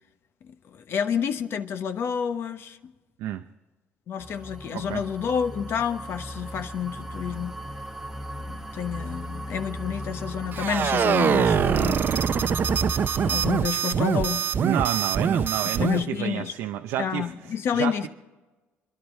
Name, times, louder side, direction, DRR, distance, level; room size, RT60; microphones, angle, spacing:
voice 1, 0.5-2.9 4.1-7.6 8.5-12.0 13.3-14.5 15.8-16.5 17.0-18.1, left 7 dB, 55° left, 1.1 m, -29 dB
sound 1, 4.2-13.6, equal, 10° right, 1.3 m, -36 dB
sound 2, 10.5-16.0, right 7 dB, 45° right, 0.7 m, -23 dB
voice 2, 14.6-17.3 17.7-18.1, right 11 dB, 85° right, 0.6 m, -30 dB
26.0 x 11.5 x 4.5 m
cardioid pair, 105°, 5 cm